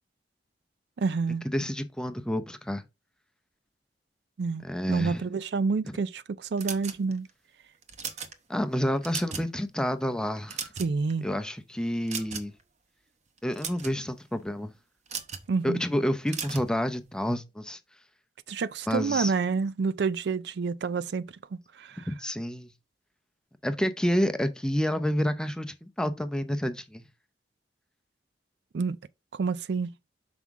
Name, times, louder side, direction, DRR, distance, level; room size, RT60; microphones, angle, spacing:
voice 1, 1.0-1.4 4.4-7.3 10.8-11.3 15.5-15.8 18.5-22.1 28.7-29.0 29.3-29.9, right 4 dB, 70° right, 0.4 m, -29 dB
voice 2, 1.5-2.8 4.6-5.2 8.5-10.7 11.2-12.5 13.4-14.7 15.6-17.8 18.9-19.3 22.1-22.7 23.6-27.0, equal, 5° left, 0.6 m, -29 dB
sound 1, 6.6-7.3 7.8-8.3 8.9-9.5 9.9-10.0 10.4-11.1 12.1-12.6 13.4-14.0 15.1-15.5 16.3-16.7, right 6 dB, 40° right, 0.9 m, -36 dB
6.1 x 5.6 x 3.6 m
head